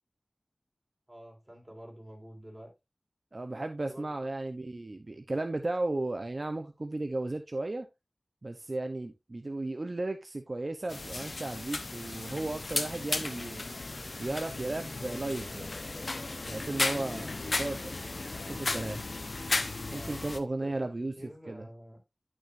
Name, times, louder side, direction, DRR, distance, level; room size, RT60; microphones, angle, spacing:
voice 1, 1.1-2.7 3.8-4.1 16.8-17.6 19.9-20.2 20.5-20.9 21.1-22.0, equal, 20° right, 4.4 m, -49 dB
voice 2, 3.3-7.9 8.4-13.6 14.2-15.7 16.5-17.9 18.5-19.0 19.9-21.1 21.5-21.6, right 2 dB, 55° right, 0.8 m, -35 dB
sound 1, 10.9-20.4, left 2 dB, 70° left, 0.9 m, -35 dB
11.0 x 6.2 x 2.6 m
wide cardioid pair, 40°, 0 cm